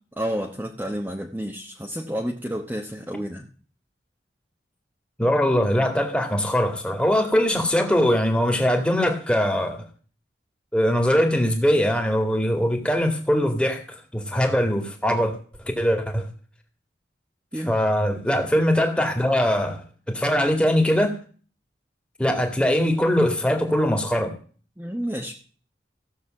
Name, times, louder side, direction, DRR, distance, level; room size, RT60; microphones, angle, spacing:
voice 1, 0.2-3.5 17.5-17.7 24.8-25.3, equal, 10° right, 1.0 m, -30 dB
voice 2, 5.2-9.8 10.7-13.8 14.1-15.4 15.8-16.3 17.7-21.1 22.2-24.4, equal, 5° left, 2.1 m, -21 dB
15.5 x 6.6 x 7.6 m
head